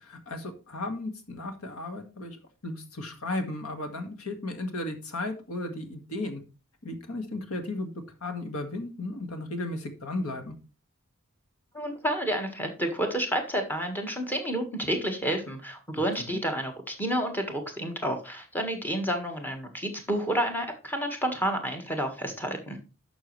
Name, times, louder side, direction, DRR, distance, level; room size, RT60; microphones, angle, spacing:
voice 1, 0.0-6.4 6.8-7.9 8.2-10.5 16.3-16.4, left 2 dB, 90° left, 6 dB, 1.9 m, -35 dB
voice 2, 11.7-22.8, equal, 10° left, 4 dB, 1.6 m, -30 dB
11.5 x 6.3 x 3.2 m, 0.33 s
head